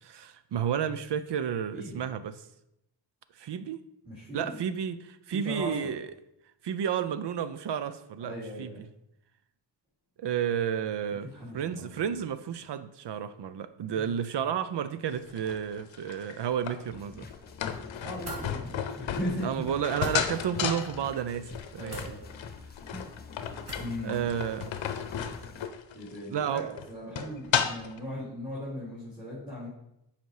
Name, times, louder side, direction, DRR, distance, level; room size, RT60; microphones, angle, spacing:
voice 1, 0.0-2.4 3.4-3.8 4.3-6.1 6.6-8.7 10.2-11.3 11.5-17.3 19.4-22.0 24.0-24.8 26.3-26.7, right 8 dB, 65° right, 0.7 m, -31 dB
voice 2, 4.0-4.6 5.3-5.9 8.2-8.8 11.3-12.0 13.9-14.0 18.0-19.7 21.8-22.5 22.9-23.1 23.8-24.3 25.9-29.7, equal, 10° right, 3.5 m, -38 dB
sound 1, 15.2-28.0, left 8 dB, 85° left, 0.7 m, -34 dB
sound 2, 16.9-25.7, left 4 dB, 20° left, 0.5 m, -49 dB
sound 3, 18.2-18.4 19.9-20.1 21.9-22.1 23.6-24.0, right 1 dB, 35° right, 2.8 m, -40 dB
7.9 x 5.2 x 4.8 m
wide cardioid pair, 110°, 44 cm